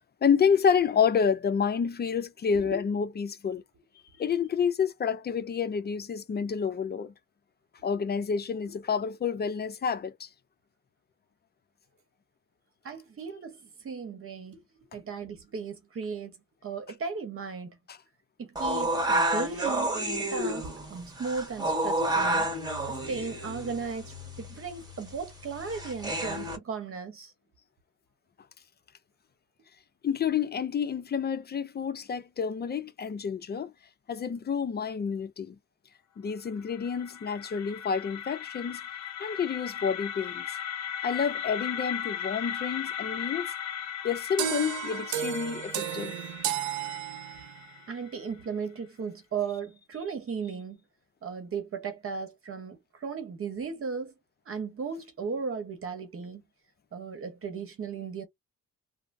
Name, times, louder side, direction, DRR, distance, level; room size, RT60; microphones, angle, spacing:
voice 1, 0.2-3.6 4.2-7.1 7.8-10.3 30.0-33.7 34.1-35.6 36.2-38.8 39.2-40.5 41.0-43.5 44.0-46.1, left 6 dB, 35° left, 0.5 m, -29 dB
voice 2, 12.8-14.6 14.9-16.4 16.6-17.8 18.4-19.9 20.3-22.5 22.9-27.3 47.9-50.8 51.2-54.1 54.5-56.4 56.9-58.2, right 5 dB, 45° right, 1.0 m, -36 dB
sound 1, 18.6-26.6, right 1 dB, 15° right, 1.4 m, -30 dB
sound 2, 36.5-48.4, left 9 dB, 60° left, 0.8 m, -37 dB
sound 3, 44.4-47.7, right 10 dB, 75° right, 0.6 m, -33 dB
3.1 x 2.0 x 2.5 m
cardioid pair, 90°, 30 cm